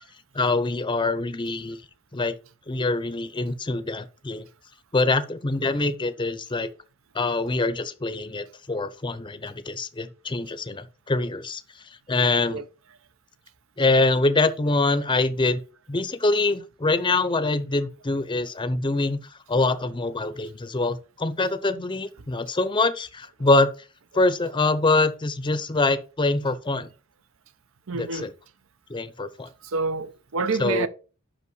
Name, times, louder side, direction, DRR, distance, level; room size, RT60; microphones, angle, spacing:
voice 1, 0.3-1.8 2.1-2.3 2.7-4.4 4.9-6.7 7.1-11.6 12.1-12.6 13.8-15.6 15.9-19.2 19.5-23.7 24.1-26.9 27.9-28.3 28.9-29.5 30.6-30.9, left 2 dB, 25° left, 0.6 m, -24 dB
voice 2, 27.9-28.3 29.6-30.9, right 4 dB, 70° right, 0.7 m, -27 dB
5.7 x 5.6 x 6.2 m
head